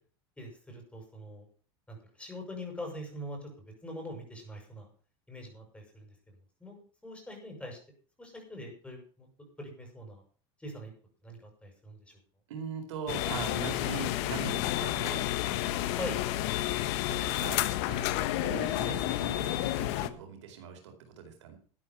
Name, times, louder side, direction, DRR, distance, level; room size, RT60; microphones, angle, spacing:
voice 1, 0.4-1.5 1.9-4.9 5.3-6.1 6.6-7.8 8.2-9.3 9.6-10.2 10.6-10.9 11.2-12.2 16.0-16.2, left 1 dB, 10° left, 2 dB, 7.3 m, -43 dB
voice 2, 12.5-15.3 15.6-16.1 16.9-21.6, right 6 dB, 90° right, 4 dB, 4.4 m, -41 dB
sound 1, 13.1-20.1, left 15 dB, 65° left, 1.2 m, -30 dB
13.0 x 9.7 x 5.8 m, 0.41 s
supercardioid pair, 120°, 15 cm